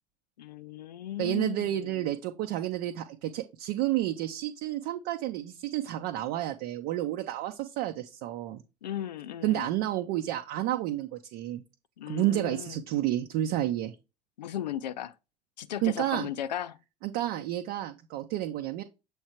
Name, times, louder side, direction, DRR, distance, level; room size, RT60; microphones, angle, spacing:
voice 1, 0.4-2.1 8.8-9.7 12.0-12.8 14.4-15.1 15.6-16.8, left 11 dB, 85° left, 0.4 m, -36 dB
voice 2, 1.2-8.6 9.4-11.6 12.1-13.9 15.8-16.3 17.0-18.8, right 13 dB, 60° right, 0.7 m, -30 dB
7.2 x 3.3 x 4.4 m
figure-of-eight pair, 60°, 21 cm